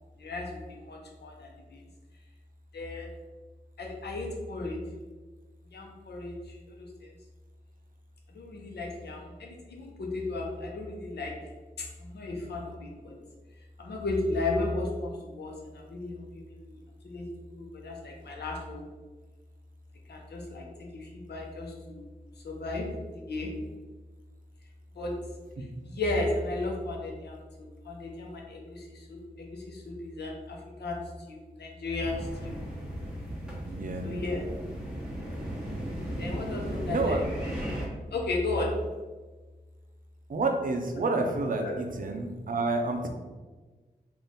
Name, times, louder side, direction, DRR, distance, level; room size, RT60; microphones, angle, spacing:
voice 1, 0.8-1.8 2.7-3.1 3.8-4.8 5.7-6.4 8.3-11.3 11.8-13.1 13.8-16.8 17.0-18.8 20.1-20.6 20.9-22.1 22.4-22.9 23.1-23.5 25.0-25.1 25.8-31.0 31.3-32.6 34.0-34.5 36.2-37.2 38.1-38.7 41.6-41.7, left 2 dB, 90° left, 0 dB, 0.8 m, -34 dB
sound 1, 32.0-37.9, equal, 5° right, 1.1 m, -36 dB
voice 2, 33.7-34.1 36.9-37.2 40.3-43.1, right 3 dB, 55° right, 3 dB, 0.6 m, -29 dB
4.0 x 2.5 x 3.6 m, 1.3 s
wide cardioid pair, 95°, 17 cm